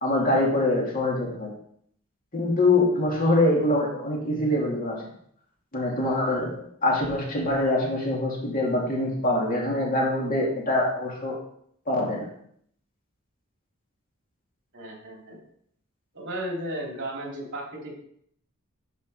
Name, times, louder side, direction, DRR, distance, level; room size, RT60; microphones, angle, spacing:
voice 1, 0.0-1.5 2.3-5.0 5.7-6.6 6.8-11.4 11.9-12.3, left 2 dB, 40° left, -2 dB, 2.7 m, -24 dB
voice 2, 14.7-15.4 16.1-17.9, right 1 dB, 55° right, -1 dB, 3.2 m, -34 dB
10.5 x 5.5 x 4.9 m, 0.66 s
head